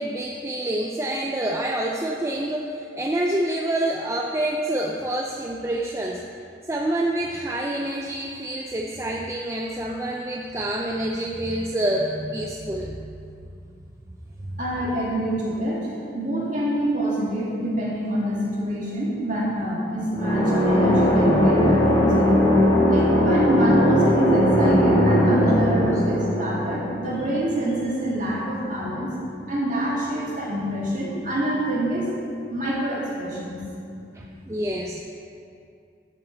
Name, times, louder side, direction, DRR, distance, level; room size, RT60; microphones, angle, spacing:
voice 1, 0.0-6.2 6.7-13.1 14.4-14.6 25.6-25.8 34.1-35.1, right 1 dB, 15° right, -1 dB, 0.4 m, -27 dB
voice 2, 14.6-22.4 22.9-29.1 29.5-32.1 32.5-33.6, right 1 dB, 45° right, -6 dB, 2.2 m, -26 dB
sound 1, 20.1-27.8, equal, 25° left, 1.5 m, -19 dB
11.0 x 7.4 x 3.9 m, 2.5 s
head